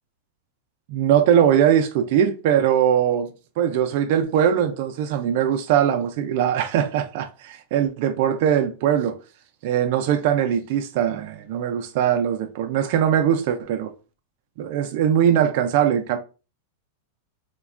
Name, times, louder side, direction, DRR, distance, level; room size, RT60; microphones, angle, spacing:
voice 1, 0.9-3.3 3.6-9.2 9.6-13.9 14.6-16.2, right 9 dB, 55° right, 0.3 m, -21 dB
3.2 x 2.2 x 2.3 m
supercardioid pair, 140°, 0 cm